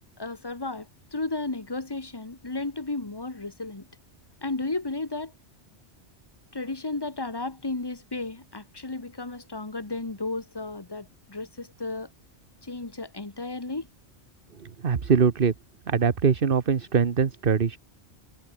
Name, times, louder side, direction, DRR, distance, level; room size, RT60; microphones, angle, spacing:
voice 1, 0.2-3.9 4.4-5.3 6.5-12.1 12.6-13.9, left 3 dB, 20° left, 1.6 m, -33 dB
voice 2, 14.6-15.5 15.9-17.8, right 6 dB, 50° right, 1.3 m, -22 dB
omnidirectional pair, 1.2 m